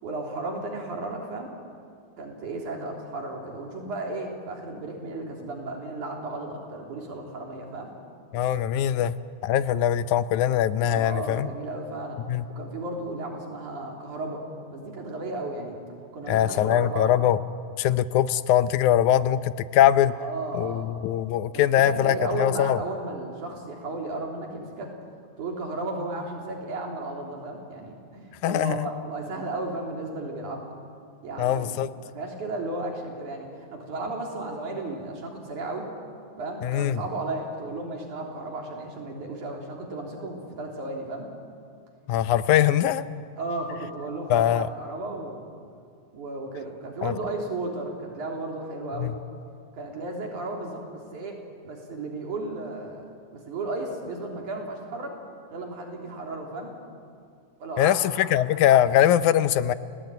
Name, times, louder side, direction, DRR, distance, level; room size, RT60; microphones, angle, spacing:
voice 1, 0.0-1.5 2.2-7.9 10.9-12.2 12.6-15.8 16.1-17.1 20.2-20.9 21.5-24.9 25.4-30.7 31.2-31.7 32.0-35.9 36.4-41.3 43.4-45.5 46.1-49.2 49.7-53.0 53.3-55.2 55.5-56.7 57.6-58.4, right 2 dB, 90° right, 0 dB, 4.9 m, -34 dB
voice 2, 8.3-9.2 9.4-11.5 12.3-12.5 16.3-17.4 17.8-20.1 20.5-22.8 28.4-28.9 31.4-31.9 36.6-37.0 42.1-43.1 44.3-44.7 47.0-47.1 49.0-49.2 57.8-59.7, left 11 dB, 85° left, 14 dB, 2.2 m, -22 dB
30.0 x 18.0 x 9.2 m, 2.4 s
omnidirectional pair, 3.4 m